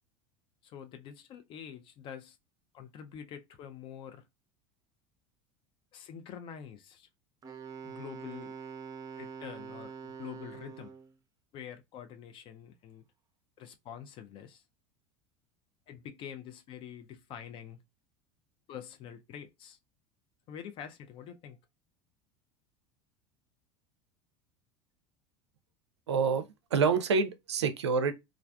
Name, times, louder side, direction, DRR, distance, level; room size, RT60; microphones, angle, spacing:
voice 1, 0.6-2.4 2.7-4.2 5.9-7.1 7.8-8.5 9.1-10.9 11.5-13.0 13.6-14.6 15.9-17.8 18.7-19.8 20.5-21.6, left 8 dB, 35° left, 0.4 m, -46 dB
Wind instrument woodwind instrument, 7.4-11.1, right 6 dB, 25° right, 0.6 m, -44 dB
voice 2, 26.1-28.1, right 5 dB, 70° right, 0.4 m, -27 dB
3.2 x 2.4 x 2.2 m
figure-of-eight pair, 75°, 15 cm